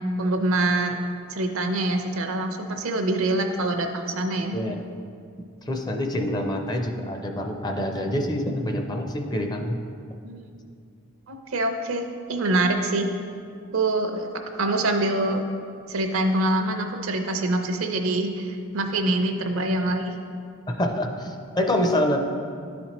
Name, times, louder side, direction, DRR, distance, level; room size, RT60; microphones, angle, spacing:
voice 1, 0.2-1.0 1.3-4.6 10.2-10.4 11.3-13.1 13.7-14.3 14.5-15.4 15.9-20.2, right 2 dB, 70° right, 5 dB, 0.6 m, -25 dB
voice 2, 5.7-9.8 20.7-22.2, left 1 dB, 20° left, 3 dB, 0.5 m, -26 dB
11.5 x 4.2 x 3.0 m, 2.3 s
head